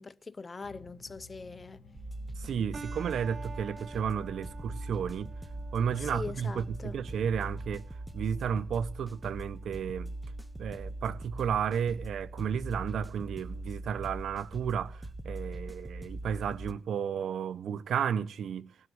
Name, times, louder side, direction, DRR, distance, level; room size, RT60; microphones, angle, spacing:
voice 1, 0.0-1.8 6.0-7.0, left 4 dB, 30° left, 0.9 m, -42 dB
sound 1, 0.6-6.5, left 4 dB, 70° left, 2.6 m, -56 dB
sound 2, 1.9-16.7, right 1 dB, 5° right, 1.4 m, -41 dB
voice 2, 2.4-5.3 5.7-7.8 8.1-10.1 10.6-18.7, right 7 dB, 70° right, 1.1 m, -33 dB
sound 3, 2.7-11.7, right 4 dB, 35° right, 1.2 m, -52 dB
19.0 x 7.6 x 8.2 m
cardioid pair, 90°, 0 cm